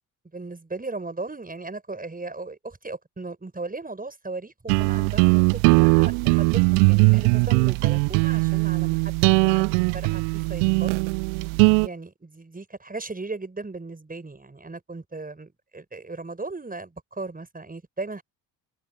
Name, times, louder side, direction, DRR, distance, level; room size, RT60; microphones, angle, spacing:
voice 1, 0.3-10.9 11.8-18.2, right 3 dB, 15° right, 7.6 m, -37 dB
sound 1, 4.7-11.9, right 40 dB or more, 55° right, 0.5 m, -20 dB
figure-of-eight pair, 50°, 50 cm